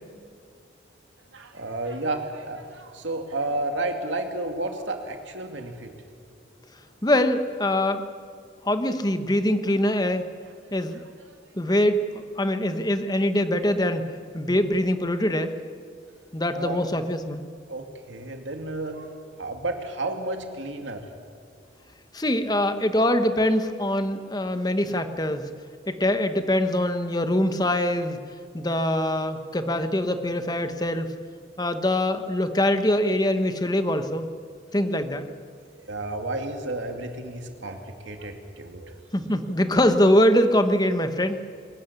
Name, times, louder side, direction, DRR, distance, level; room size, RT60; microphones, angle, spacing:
voice 1, 1.3-5.9 11.7-11.8 16.5-16.8 17.7-21.1 24.5-24.6 33.0-33.1 35.9-39.0, right 2 dB, 80° right, 4 dB, 2.5 m, -32 dB
voice 2, 7.0-8.0 8.6-10.2 10.7-11.0 11.6-12.0 12.4-14.1 14.3-15.5 16.3-17.4 22.1-25.5 25.9-28.2 28.5-31.1 31.6-34.3 34.7-35.3 39.1-41.4, left 1 dB, 20° left, 9 dB, 1.1 m, -23 dB
23.0 x 14.0 x 9.8 m, 2.3 s
head